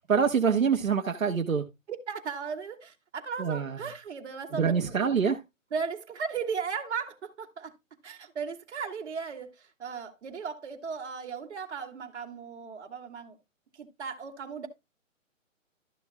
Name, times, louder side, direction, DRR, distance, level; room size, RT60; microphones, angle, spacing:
voice 1, 0.1-1.6 3.4-3.8 4.5-5.4, right 6 dB, 80° right, 1.6 m, -25 dB
voice 2, 1.9-5.0 5.7-7.7 8.0-13.4 13.7-14.7, right 6 dB, 55° right, 2.5 m, -36 dB
13.5 x 7.1 x 2.3 m
hypercardioid pair, 145°, 40 cm